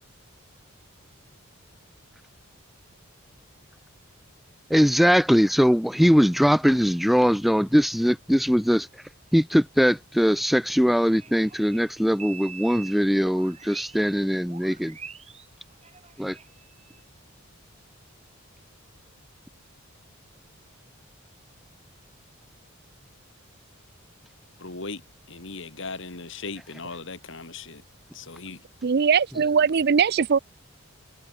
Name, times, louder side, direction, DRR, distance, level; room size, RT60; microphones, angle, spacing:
voice 1, 4.7-8.9 9.3-15.0 16.2-16.4, equal, ahead, 1.1 m, -21 dB
sound 1, 10.9-14.2 14.5-17.0, right 6 dB, 30° right, 7.8 m, -44 dB
voice 2, 24.6-25.0 25.3-27.8 28.1-28.6, left 3 dB, 60° left, 2.9 m, -37 dB
voice 3, 28.8-30.4, right 6 dB, 50° right, 0.5 m, -20 dB
head